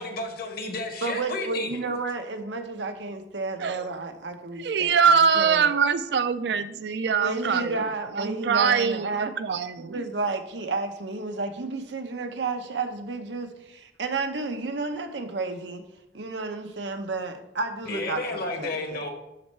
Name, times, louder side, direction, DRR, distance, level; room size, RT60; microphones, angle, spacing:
voice 1, 0.0-1.8 17.8-19.1, left 2 dB, 60° left, 4 dB, 1.4 m, -32 dB
voice 2, 1.0-6.0 7.1-9.3 9.8-15.8 16.1-19.1, right 3 dB, 85° right, 6 dB, 0.9 m, -32 dB
voice 3, 4.6-7.8 8.2-10.0, right 6 dB, 65° right, 11 dB, 0.5 m, -23 dB
12.0 x 4.4 x 3.2 m, 0.90 s
head